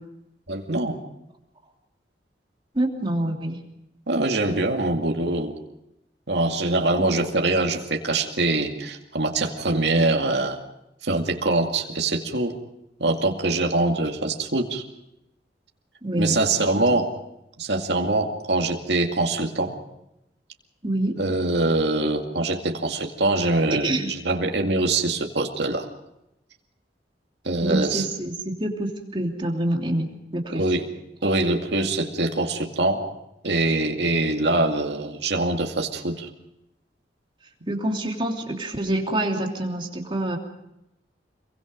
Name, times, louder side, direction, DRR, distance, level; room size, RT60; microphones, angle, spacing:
voice 1, 0.5-1.0 4.1-5.5 6.3-10.6 11.0-12.5 13.0-14.8 16.2-17.1 17.6-19.8 21.2-24.0 24.2-25.9 27.4-28.0 30.5-30.8 31.2-33.1 33.4-36.3, right 2 dB, 75° right, 2 dB, 2.3 m, -23 dB
voice 2, 2.7-3.6 6.9-7.0 16.0-16.4 16.9-17.0 20.8-21.2 23.7-24.1 27.6-30.1 30.3-30.6 37.7-40.4, right 1 dB, 30° right, 1 dB, 3.1 m, -26 dB
27.5 x 23.0 x 5.2 m, 0.86 s
head